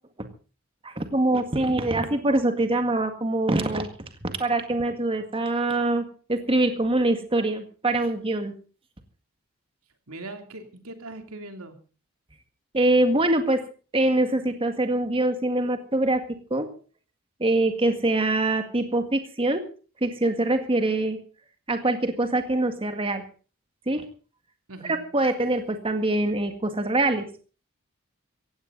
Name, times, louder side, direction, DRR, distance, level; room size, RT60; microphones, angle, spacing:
voice 1, 0.8-3.9 4.2-8.5 12.7-13.6 13.9-16.2 16.5-16.7 17.4-19.6 20.0-21.2 21.7-23.2 23.9-24.0 24.8-27.3, right 2 dB, 25° right, 7 dB, 1.9 m, -24 dB
voice 2, 10.1-11.8 24.7-25.0, right 2 dB, 90° right, 6 dB, 3.1 m, -40 dB
17.5 x 16.0 x 4.0 m, 0.37 s
head